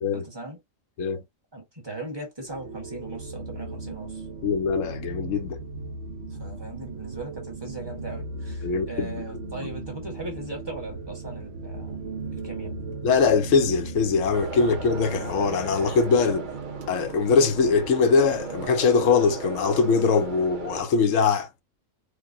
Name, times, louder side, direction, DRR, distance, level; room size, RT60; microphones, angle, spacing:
voice 1, 0.1-0.6 1.5-4.2 6.3-12.0 12.4-12.7, right 2 dB, 20° right, 1.4 m, -38 dB
sound 1, 2.4-18.7, right 3 dB, 65° right, 1.1 m, -37 dB
voice 2, 4.4-5.6 8.6-9.7 13.0-16.5 16.9-21.5, left 5 dB, 75° left, 1.0 m, -22 dB
sound 2, 14.3-20.8, right 4 dB, 45° right, 0.7 m, -37 dB
4.6 x 2.2 x 2.5 m
omnidirectional pair, 1.4 m